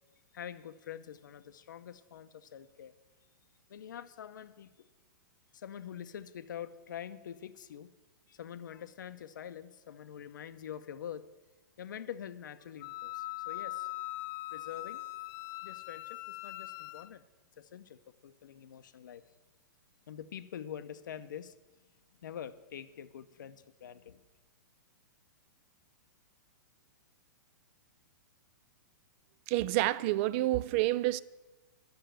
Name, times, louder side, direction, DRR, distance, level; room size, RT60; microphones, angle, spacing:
voice 1, 0.3-2.9 3.7-4.9 5.5-7.9 8.3-11.2 11.8-13.9 14.5-15.0 15.6-17.2 17.6-19.2 20.1-21.5 22.2-24.2, left 9 dB, 80° left, 0.8 m, -45 dB
Wind instrument woodwind instrument, 12.8-17.1, left 19 dB, 35° left, 0.5 m, -41 dB
voice 2, 29.5-31.2, right 17 dB, 40° right, 0.4 m, -28 dB
10.5 x 6.7 x 8.9 m
hypercardioid pair, 135°, 10 cm